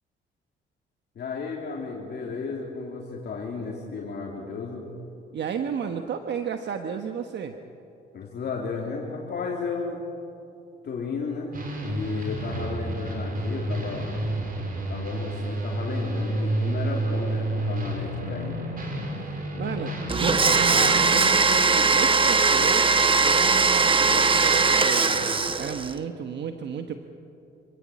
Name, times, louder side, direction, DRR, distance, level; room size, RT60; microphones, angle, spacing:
voice 1, 1.1-4.9 8.1-10.0 10.8-11.5 11.8-14.1 14.9-18.6, left 4 dB, 55° left, -2 dB, 3.2 m, -33 dB
voice 2, 5.3-7.5 19.5-22.8 23.2-26.9, right 7 dB, 60° right, 6 dB, 1.2 m, -33 dB
sound 1, 11.5-21.2, right 1 dB, 45° right, 4.8 m, -30 dB
Domestic sounds home sounds, 20.1-25.9, right 4 dB, 25° right, 1.1 m, -20 dB
26.5 x 16.5 x 8.7 m, 2.8 s
cardioid pair, 90°, 20 cm